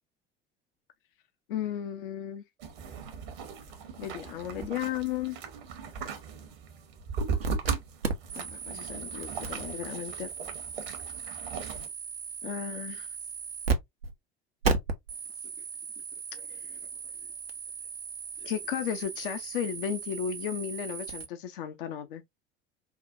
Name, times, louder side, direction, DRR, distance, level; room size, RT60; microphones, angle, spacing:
voice 1, 1.5-2.4 4.0-5.4 8.3-10.3 12.4-13.1 16.3-16.8 18.4-22.2, left 9 dB, 65° left, 0.6 m, -35 dB
sound 1, 2.6-11.9, right 5 dB, 60° right, 1.0 m, -38 dB
sound 2, 7.4-7.7 8.0-13.8 14.0-14.1 14.6-21.3, right 4 dB, 85° right, 0.6 m, -35 dB
4.8 x 2.3 x 2.5 m
figure-of-eight pair, 65°, 29 cm